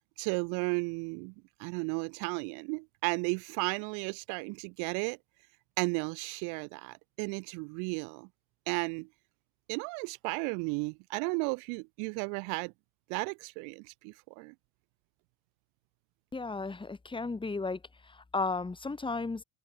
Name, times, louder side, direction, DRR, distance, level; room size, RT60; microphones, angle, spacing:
voice 1, 0.2-1.3 1.6-5.2 5.8-8.3 8.7-9.1 9.7-12.7 13.1-14.5, right 38 dB, 80° right, 1.7 m, -34 dB
voice 2, 16.3-19.4, left 3 dB, 15° left, 3.2 m, -34 dB
open air
supercardioid pair, 90°, 29 cm